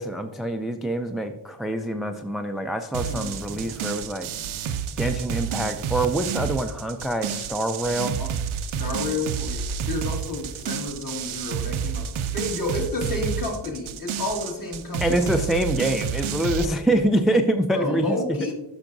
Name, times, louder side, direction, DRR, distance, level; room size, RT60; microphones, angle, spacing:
voice 1, 0.0-4.3 5.0-8.2 15.0-18.2, right 1 dB, ahead, 6 dB, 0.3 m, -25 dB
sound 1, 2.9-16.7, right 7 dB, 90° right, 0.6 m, -30 dB
voice 2, 3.0-3.8 8.2-8.3 8.7-15.3 17.7-18.5, left 2 dB, 45° left, -1 dB, 2.2 m, -31 dB
11.5 x 5.9 x 2.6 m, 0.95 s
wide cardioid pair, 110°, 47 cm